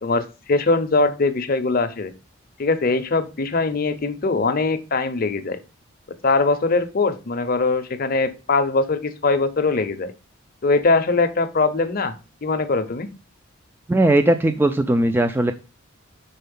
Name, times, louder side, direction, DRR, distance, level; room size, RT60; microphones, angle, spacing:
voice 1, 0.0-2.1 2.6-5.6 6.2-10.1 10.6-13.1, left 3 dB, 45° left, 9 dB, 0.6 m, -21 dB
voice 2, 13.9-15.5, right 1 dB, 10° right, 8 dB, 0.3 m, -18 dB
5.6 x 4.2 x 5.2 m, 0.31 s
head